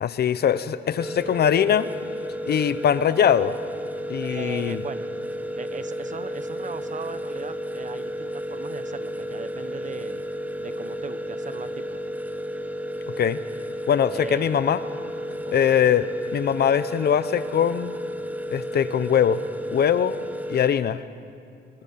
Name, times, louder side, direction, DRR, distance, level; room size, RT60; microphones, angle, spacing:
voice 1, 0.0-1.9 2.5-3.6 4.1-4.8 13.2-13.4 13.9-14.8 15.5-16.1 16.3-17.9 18.5-19.4 19.7-20.2 20.5-21.0, left 9 dB, 55° left, 14 dB, 0.8 m, -21 dB
sound 1, 1.0-20.7, equal, 10° right, 1.0 m, -32 dB
voice 2, 4.2-5.1 5.6-10.3 10.6-12.0 14.1-14.7 15.4-15.8, right 6 dB, 40° right, 11 dB, 1.2 m, -39 dB
23.5 x 23.5 x 5.8 m, 2.4 s
cardioid pair, 90°, 20 cm